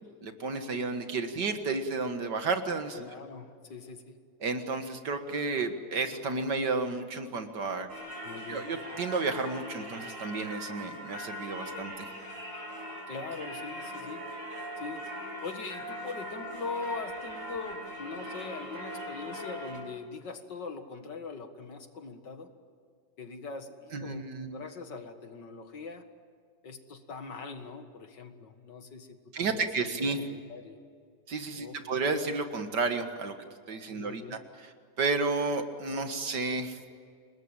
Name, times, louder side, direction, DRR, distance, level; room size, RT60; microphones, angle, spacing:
voice 1, 0.2-3.1 4.4-7.9 8.5-12.1 23.9-24.6 29.3-30.2 31.3-33.3 33.7-34.7 35.0-36.8, right 3 dB, 65° right, 7 dB, 2.3 m, -32 dB
voice 2, 2.9-4.2 8.2-8.6 13.1-14.2 14.8-15.0 15.4-22.5 23.2-26.0 26.6-30.8 31.6-32.0 34.0-34.4, left 4 dB, 65° left, 7 dB, 2.4 m, -42 dB
Singing / Church bell, 7.9-19.8, equal, 40° right, 6.1 m, -40 dB
29.0 x 20.0 x 9.0 m, 2.1 s
omnidirectional pair, 2.0 m